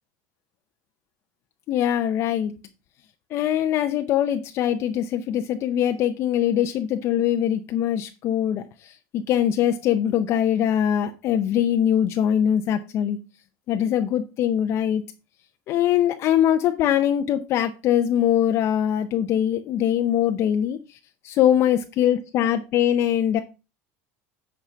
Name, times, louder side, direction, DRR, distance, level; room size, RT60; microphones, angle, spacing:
voice 1, 1.7-2.5 3.3-13.2 13.7-15.0 15.7-21.0 21.2-23.4, left 10 dB, 40° left, 6 dB, 0.7 m, -22 dB
8.3 x 4.8 x 5.7 m, 0.30 s
cardioid pair, 160°, 7 cm